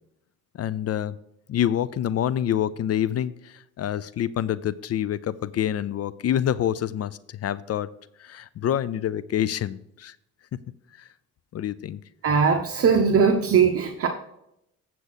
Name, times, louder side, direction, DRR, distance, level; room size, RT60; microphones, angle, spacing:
voice 1, 0.5-1.2 1.5-7.9 8.2-10.2 10.9-11.1 11.5-12.0, left 10 dB, 55° left, 18 dB, 0.5 m, -27 dB
voice 2, 12.2-14.1, right 6 dB, 50° right, 4 dB, 1.0 m, -20 dB
8.2 x 7.5 x 4.1 m, 0.79 s
cardioid pair, 90°, 30 cm